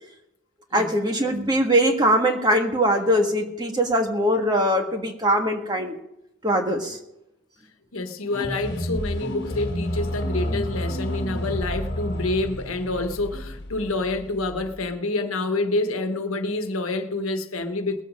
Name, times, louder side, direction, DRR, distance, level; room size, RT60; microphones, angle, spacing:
voice 1, 0.7-5.9 6.4-7.0, equal, 20° right, 1.6 m, -21 dB
voice 2, 7.9-18.0, left 2 dB, 90° left, 1.3 m, -27 dB
sound 1, 8.3-14.9, equal, 50° left, 1.6 m, -30 dB
20.0 x 8.2 x 5.2 m
head